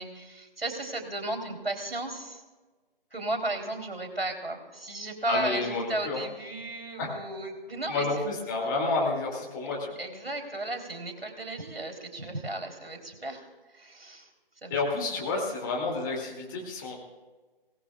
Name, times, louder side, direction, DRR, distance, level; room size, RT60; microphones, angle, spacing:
voice 1, 0.0-2.4 3.1-8.1 10.0-13.5 13.7-14.3 14.6-14.8 15.1-15.4, right 2 dB, 80° right, 4 dB, 3.6 m, -35 dB
voice 2, 5.3-6.2 7.0-7.1 7.9-9.9 14.7-16.9, left 3 dB, 20° left, -2 dB, 2.6 m, -30 dB
23.5 x 18.5 x 2.4 m, 1.3 s
figure-of-eight pair, 145°, 29 cm